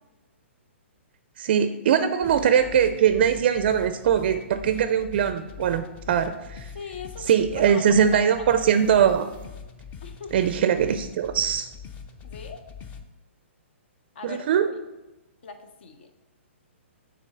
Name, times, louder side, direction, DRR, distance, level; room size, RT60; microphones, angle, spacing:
voice 1, 1.4-6.7 7.3-9.3 10.3-11.7 14.2-14.7, right 8 dB, 50° right, 10 dB, 0.4 m, -21 dB
sound 1, 2.2-13.0, left 6 dB, 20° left, 0.5 m, -42 dB
voice 2, 6.7-8.5 10.0-10.5 12.2-12.6 14.1-14.7 15.4-16.1, left 5 dB, 60° left, 7 dB, 0.7 m, -40 dB
6.0 x 3.8 x 5.6 m, 1.0 s
hypercardioid pair, 150°, 7 cm